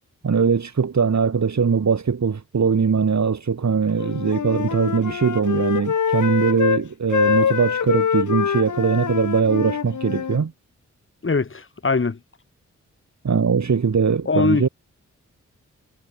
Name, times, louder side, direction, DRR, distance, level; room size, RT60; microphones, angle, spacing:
voice 1, 0.2-10.5 13.2-14.7, right 5 dB, 65° right, 7.9 m, -21 dB
Wind instrument woodwind instrument, 4.0-6.8 7.1-10.4, left 7 dB, 75° left, 4.1 m, -24 dB
voice 2, 11.2-12.2 14.3-14.7, left 4 dB, 40° left, 3.0 m, -21 dB
cardioid pair, 50°, 30 cm